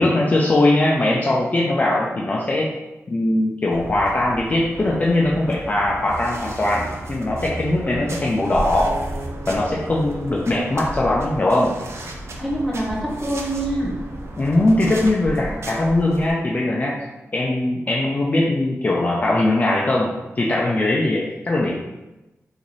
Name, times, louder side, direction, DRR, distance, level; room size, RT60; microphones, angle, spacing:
voice 1, 0.0-2.7 3.1-8.9 9.5-11.7 14.4-17.0 17.3-21.7, left 2 dB, 30° left, -3 dB, 0.4 m, -20 dB
sound 1, 3.7-16.3, right 1 dB, 55° right, 0.5 m, -33 dB
Acoustic guitar, 8.8-13.1 13.7-14.0, right 1 dB, 85° right, 0.8 m, -41 dB
voice 2, 12.4-14.0, right 1 dB, ahead, -5 dB, 0.9 m, -25 dB
3.0 x 2.5 x 4.0 m, 1.0 s
wide cardioid pair, 150°, 5 cm